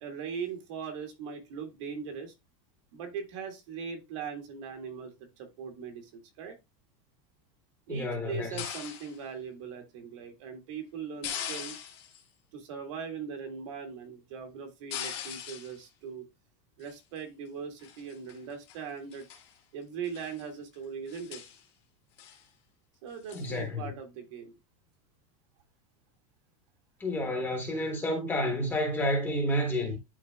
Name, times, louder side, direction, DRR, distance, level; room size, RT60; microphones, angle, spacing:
voice 1, 0.0-2.3 2.9-6.5 7.9-11.9 12.5-16.3 16.8-19.2 19.7-21.4 23.0-24.5, right 6 dB, 60° right, 1.8 m, -40 dB
voice 2, 7.9-8.6 23.3-23.9 27.0-30.0, left 1 dB, 10° left, 1.4 m, -30 dB
sound 1, 8.6-9.2 11.2-12.2 14.9-15.8 16.8-17.2 17.8-18.4 18.7-18.8 19.1-19.5 20.0-20.4 20.7-20.8 21.1-21.6 22.2-22.4 23.3-23.5, left 9 dB, 30° left, 1.5 m, -40 dB
11.0 x 4.0 x 2.2 m
supercardioid pair, 180°, 18 cm